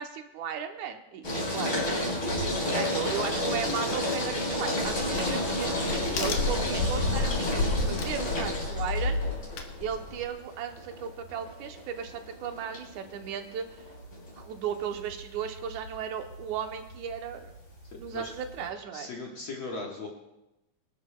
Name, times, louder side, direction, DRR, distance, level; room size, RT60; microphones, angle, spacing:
voice 1, 0.0-2.2 2.7-9.2 9.8-13.8 14.4-17.5 18.0-19.1, right 7 dB, 75° right, 5 dB, 2.1 m, -36 dB
sound 1, 1.2-18.7, left 1 dB, 30° left, 4.3 m, -32 dB
voice 2, 2.6-3.1 9.0-9.4 18.1-18.3 18.9-20.1, left 3 dB, 50° left, -1 dB, 1.8 m, -39 dB
Crack, 4.8-10.3, left 3 dB, 85° left, 2.7 m, -31 dB
25.5 x 12.0 x 2.2 m, 0.92 s
omnidirectional pair, 3.7 m